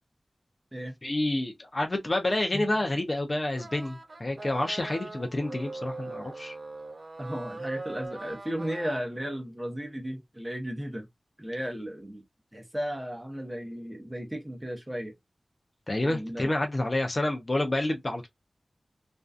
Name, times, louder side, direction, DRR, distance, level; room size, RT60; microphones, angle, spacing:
voice 1, 1.0-6.5 15.9-18.3, left 1 dB, 35° left, 0.5 m, -29 dB
sound 1, 3.6-9.0, right 3 dB, 50° right, 0.6 m, -41 dB
voice 2, 7.2-11.1 11.4-12.2 12.5-15.1 16.0-16.6, equal, 15° right, 0.7 m, -35 dB
2.5 x 2.2 x 2.2 m
wide cardioid pair, 85°, 0 cm